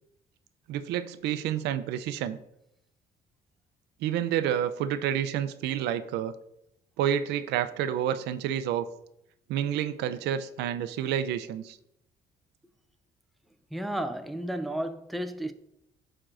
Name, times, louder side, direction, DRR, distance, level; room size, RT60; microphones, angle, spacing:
voice 1, 0.7-2.4 4.0-6.3 7.0-8.9 9.5-11.8, right 10 dB, 85° right, 0.5 m, -29 dB
voice 2, 13.7-15.5, right 1 dB, ahead, 0.4 m, -32 dB
12.5 x 4.4 x 2.5 m
cardioid pair, 110°, 17 cm